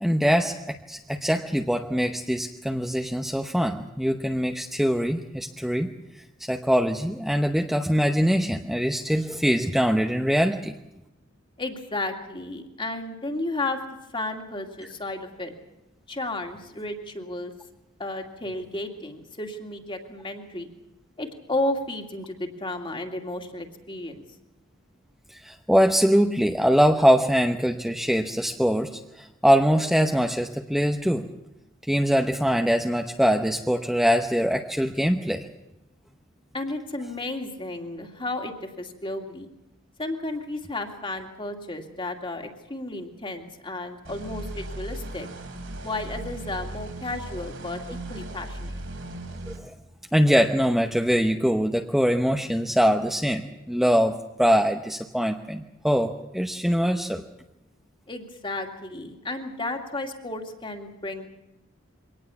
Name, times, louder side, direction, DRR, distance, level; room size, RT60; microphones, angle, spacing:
voice 1, 0.0-5.9 6.4-10.7 25.3-31.3 31.9-35.5 49.5-49.7 50.1-57.2, equal, ahead, 4 dB, 0.8 m, -23 dB
voice 2, 11.6-13.8 14.1-15.5 16.1-17.5 18.0-20.7 21.2-24.2 36.5-39.5 40.0-45.3 45.8-48.7 58.1-61.3, left 2 dB, 25° left, 4 dB, 2.4 m, -33 dB
sound 1, 44.0-49.6, right 1 dB, 80° right, 4.4 m, -37 dB
23.5 x 18.5 x 7.1 m, 0.92 s
head